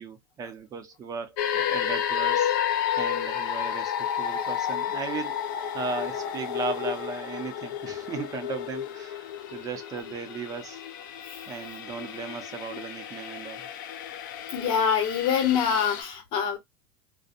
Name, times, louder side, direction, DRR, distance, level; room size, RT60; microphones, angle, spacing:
voice 1, 0.0-2.5 2.9-10.8 11.5-13.7, right 5 dB, 35° right, 0.7 m, -36 dB
sound 1, 1.4-16.0, left 9 dB, 80° left, 0.5 m, -31 dB
voice 2, 14.5-16.6, left 7 dB, 50° left, 1.2 m, -25 dB
2.5 x 2.2 x 2.5 m
supercardioid pair, 105°, 11 cm